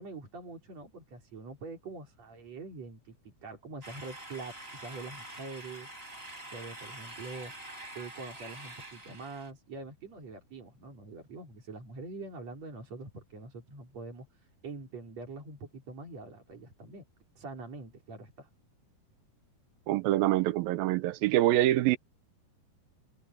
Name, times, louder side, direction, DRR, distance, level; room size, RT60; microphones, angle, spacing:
voice 1, 0.0-5.9 6.5-7.5 8.0-17.1 17.4-18.5, right 3 dB, 45° right, 5.2 m, -44 dB
sound 1, 3.8-9.5, right 1 dB, 15° right, 4.1 m, -46 dB
voice 2, 19.9-22.0, right 15 dB, 80° right, 2.4 m, -25 dB
omnidirectional pair, 4.4 m